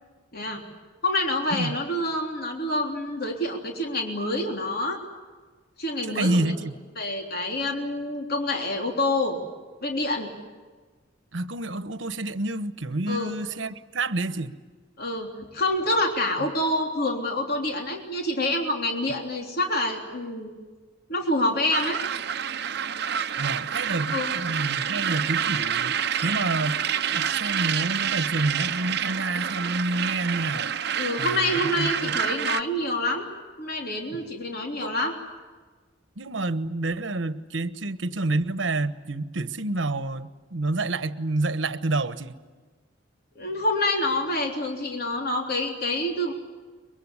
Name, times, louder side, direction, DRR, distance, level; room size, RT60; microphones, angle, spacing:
voice 1, 1.0-5.0 5.8-6.5 7.0-9.4 9.8-10.3 13.1-13.3 15.0-20.5 21.1-22.0 24.1-24.3 31.0-33.3 33.6-35.2 43.4-46.3, left 1 dB, 55° left, 2 dB, 3.4 m, -27 dB
voice 2, 6.0-6.7 11.3-14.6 23.4-26.0 26.2-30.7 31.2-32.2 34.1-34.3 34.8-35.0 36.2-42.3, right 2 dB, 80° right, 13 dB, 1.2 m, -28 dB
sound 1, 21.7-32.6, right 8 dB, 60° right, 0.9 m, -28 dB
23.5 x 22.5 x 9.9 m, 1.4 s
head